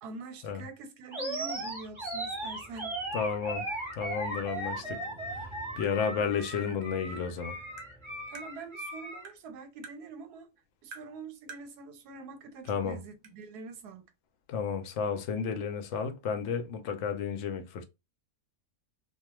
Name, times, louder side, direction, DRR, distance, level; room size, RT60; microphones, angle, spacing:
voice 1, 0.0-3.0 6.2-6.3 8.3-10.5 10.8-14.1, right 3 dB, 85° right, 1.2 m, -45 dB
Animal, 1.1-9.3, right 2 dB, 25° right, 0.8 m, -37 dB
sound 1, 1.2-8.7, right 1 dB, 10° left, 0.4 m, -54 dB
voice 2, 3.1-3.7 4.0-5.0 5.3-7.6 12.7-13.0 14.5-17.8, left 6 dB, 65° left, 0.7 m, -32 dB
Tap, 7.8-7.9 8.4-8.5 9.2-9.4 9.8-10.0 10.9-11.1 11.5-11.7 12.6-12.7 13.2-13.3, right 5 dB, 60° right, 0.8 m, -47 dB
2.3 x 2.3 x 3.0 m
omnidirectional pair, 1.6 m